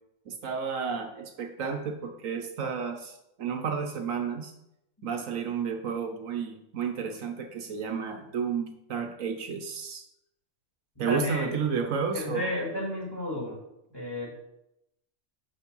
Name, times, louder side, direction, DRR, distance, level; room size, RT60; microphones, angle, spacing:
voice 1, 0.3-4.5 5.0-10.0 11.0-12.5, right 6 dB, 75° right, 4 dB, 1.2 m, -32 dB
voice 2, 11.0-11.5 12.1-13.6 13.9-14.3, left 1 dB, 15° left, -4 dB, 2.5 m, -32 dB
7.2 x 5.6 x 5.4 m, 0.85 s
omnidirectional pair, 1.4 m